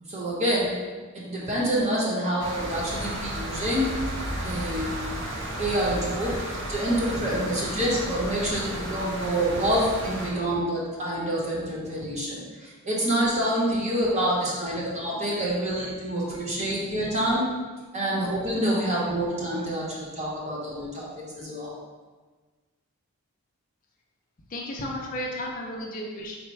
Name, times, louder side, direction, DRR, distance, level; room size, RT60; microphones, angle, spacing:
voice 1, 0.1-0.7 1.1-3.9 4.4-5.1 5.6-17.5 17.9-21.1 21.4-21.7, right 1 dB, 30° right, -5 dB, 0.9 m, -27 dB
sound 1, 2.4-10.3, right 1 dB, 55° right, 0.6 m, -33 dB
voice 2, 24.5-26.4, left 1 dB, 40° left, -1 dB, 0.4 m, -33 dB
4.1 x 2.1 x 4.6 m, 1.4 s
head